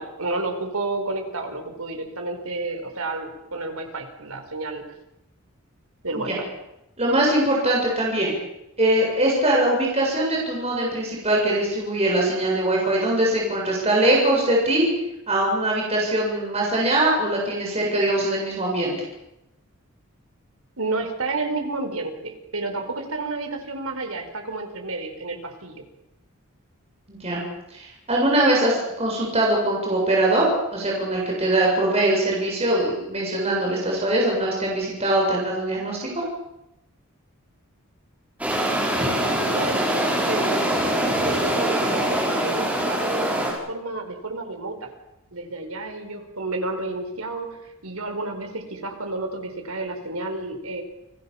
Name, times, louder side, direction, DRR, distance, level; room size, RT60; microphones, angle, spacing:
voice 1, 0.0-4.8 6.0-6.3 20.8-25.8 38.9-44.9 45.3-50.8, right 2 dB, 80° right, 5 dB, 4.8 m, -31 dB
voice 2, 7.0-8.3 8.8-14.9 15.3-18.9 27.1-27.4 27.7-30.5 30.7-36.2, right 1 dB, 30° right, -2 dB, 7.4 m, -22 dB
sound 1, 38.4-43.5, right 1 dB, 5° right, 7.2 m, -23 dB
29.5 x 20.5 x 7.3 m, 0.88 s
head